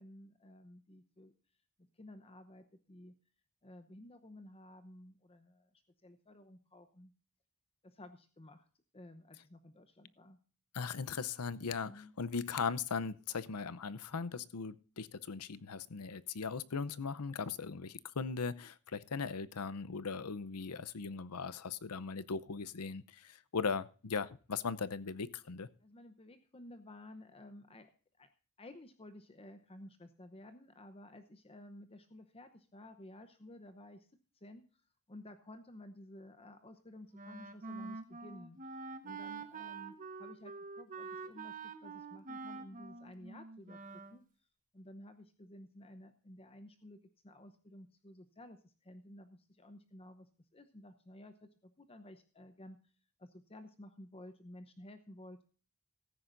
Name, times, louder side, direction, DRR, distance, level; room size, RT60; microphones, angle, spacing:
voice 1, 0.0-1.3 1.8-3.1 3.6-7.1 7.8-8.7 8.9-10.4 11.8-12.1 25.8-27.9 28.2-28.3 28.6-34.1 34.3-34.8 35.1-44.2 44.7-47.0 47.2-52.8 53.2-55.4, left 1 dB, 25° left, 0.8 m, -54 dB
voice 2, 10.7-25.7, left 5 dB, 90° left, 0.7 m, -39 dB
Wind instrument woodwind instrument, 37.1-44.2, right 4 dB, 35° right, 1.3 m, -46 dB
16.0 x 14.0 x 2.6 m
head